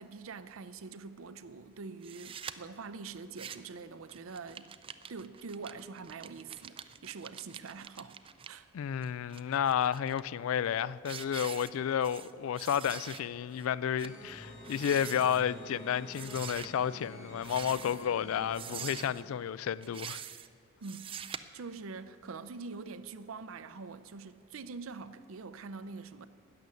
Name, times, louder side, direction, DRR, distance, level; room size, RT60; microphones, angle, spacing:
voice 1, 0.0-4.7 5.1-8.2 8.5-8.7 20.8-21.2 21.5-26.3, right 4 dB, 75° right, 0.5 m, -44 dB
sound 1, 2.0-2.5 3.2-3.8 4.1-8.5 9.0-10.2 10.6-10.8 11.0-12.3 12.6-13.2 13.6-13.7 14.0-14.2 14.6-15.4 16.1-16.7 17.4-18.1 18.5-19.2 19.8-20.5 20.8-21.4, right 8 dB, 25° right, 0.4 m, -44 dB
voice 2, 8.7-20.2, left 8 dB, 80° left, 0.3 m, -31 dB
sound 2, 14.0-19.2, left 1 dB, 60° left, 3.3 m, -49 dB
12.5 x 6.8 x 9.6 m
head